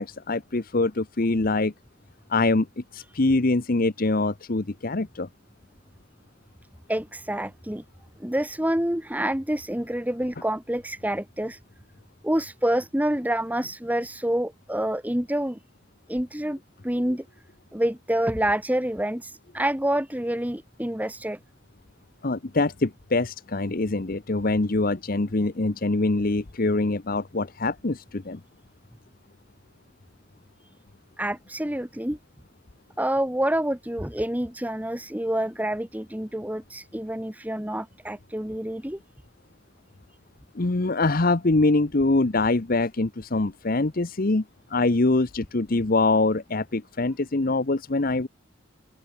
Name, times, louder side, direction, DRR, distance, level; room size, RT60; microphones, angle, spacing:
voice 1, 0.0-1.7 2.3-5.3 22.2-28.4 40.5-44.4 44.7-48.3, left 2 dB, 45° left, 0.9 m, -24 dB
voice 2, 6.9-7.8 8.2-11.6 12.2-15.6 16.1-16.6 16.8-17.2 17.7-21.4 31.2-32.2 33.0-39.0, right 1 dB, 10° right, 1.3 m, -27 dB
head